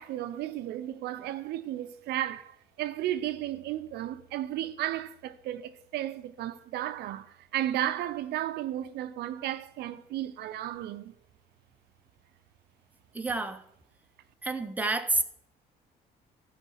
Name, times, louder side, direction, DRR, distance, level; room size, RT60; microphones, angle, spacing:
voice 1, 0.0-11.1, right 13 dB, 75° right, 0.6 m, -34 dB
voice 2, 13.1-13.6 14.4-15.2, right 3 dB, 10° right, 0.8 m, -29 dB
13.0 x 5.0 x 6.3 m
cardioid pair, 110°, 17 cm